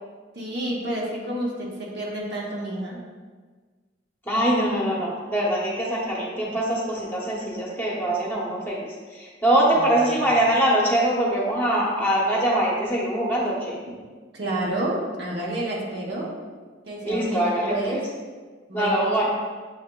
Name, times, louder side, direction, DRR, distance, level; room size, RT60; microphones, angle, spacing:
voice 1, 0.3-3.0 9.7-10.4 14.3-16.3 16.9-18.0 18.7-19.2, right 1 dB, 60° right, -3 dB, 0.9 m, -30 dB
voice 2, 4.3-8.8 9.2-13.8 17.0-18.0 18.7-19.2, right 1 dB, 10° left, -5 dB, 0.8 m, -23 dB
7.1 x 2.9 x 2.2 m, 1.4 s
head